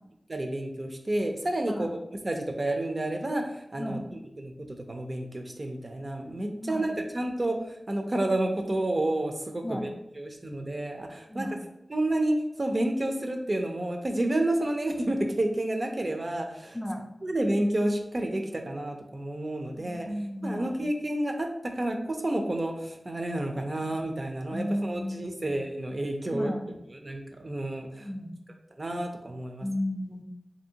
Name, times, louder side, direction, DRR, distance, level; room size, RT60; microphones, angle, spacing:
voice 1, 0.3-1.9 2.2-9.9 10.2-11.5 11.9-16.8 17.2-20.1 20.4-28.1 28.8-29.7, right 1 dB, 50° right, 3 dB, 0.4 m, -30 dB
voice 2, 19.8-20.7 24.5-25.5 26.3-26.7 28.0-28.4 29.6-30.2, left 1 dB, 15° left, 3 dB, 0.4 m, -34 dB
2.7 x 2.7 x 2.7 m, 0.83 s
cardioid pair, 40°, 0 cm